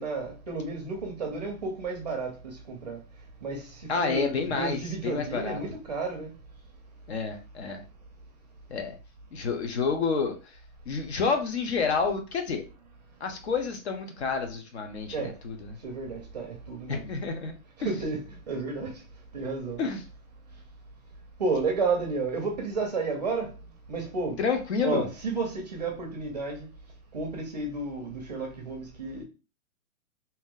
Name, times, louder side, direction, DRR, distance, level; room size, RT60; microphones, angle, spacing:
voice 1, 0.0-3.0 3.4-6.3 15.1-15.3 15.8-17.1 17.8-18.9 19.3-19.8 21.4-23.5 23.9-24.4 24.8-26.7 27.1-29.2, right 3 dB, 30° right, 0.5 m, -32 dB
voice 2, 3.9-5.6 7.1-7.8 8.7-9.0 9.3-10.3 10.9-12.6 13.2-15.8 16.9-17.5 17.8-17.9 19.8-20.0 24.4-25.1, left 5 dB, 50° left, 0.8 m, -29 dB
2.9 x 2.7 x 3.7 m
hypercardioid pair, 175°, 42 cm